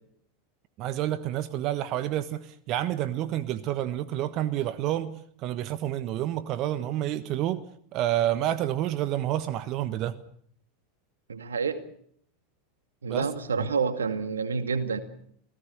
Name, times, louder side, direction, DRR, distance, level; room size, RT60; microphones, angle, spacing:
voice 1, 0.8-7.6 7.9-10.2 13.1-13.2 13.6-13.7, right 13 dB, 45° right, 14 dB, 1.4 m, -29 dB
voice 2, 11.3-11.8 13.0-15.0, right 5 dB, 80° right, 10 dB, 2.3 m, -28 dB
29.0 x 18.0 x 6.8 m, 0.64 s
hypercardioid pair, 90°, 0 cm